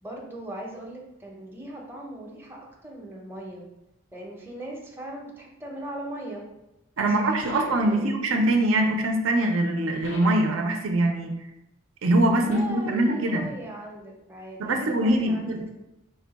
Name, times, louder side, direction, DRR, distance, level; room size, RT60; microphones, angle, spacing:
voice 1, 0.0-3.6 4.1-6.4 7.0-8.1 12.3-15.7, right 1 dB, 10° right, -2 dB, 0.6 m, -39 dB
voice 2, 7.0-11.4 12.0-13.5 14.6-15.7, right 1 dB, 80° right, 3 dB, 0.5 m, -23 dB
sound 1, 7.4-8.1 10.0-10.6 12.5-12.9, left 3 dB, 60° left, 0.4 m, -42 dB
3.8 x 2.2 x 4.0 m, 0.91 s
head